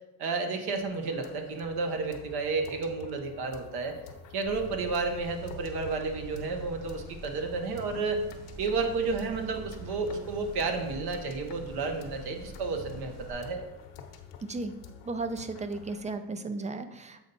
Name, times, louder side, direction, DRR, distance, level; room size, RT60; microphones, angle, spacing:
voice 1, 0.2-4.0 4.3-8.2 8.6-13.6, right 4 dB, 65° right, 4 dB, 1.0 m, -31 dB
sound 1, 0.8-16.1, left 6 dB, 80° left, 1.0 m, -50 dB
sound 2, 4.4-13.3, right 3 dB, 50° right, 2.2 m, -45 dB
voice 2, 14.4-14.8 15.0-17.3, right 3 dB, 20° right, 10 dB, 0.3 m, -35 dB
7.2 x 4.3 x 4.0 m, 0.99 s
cardioid pair, 110°, 42 cm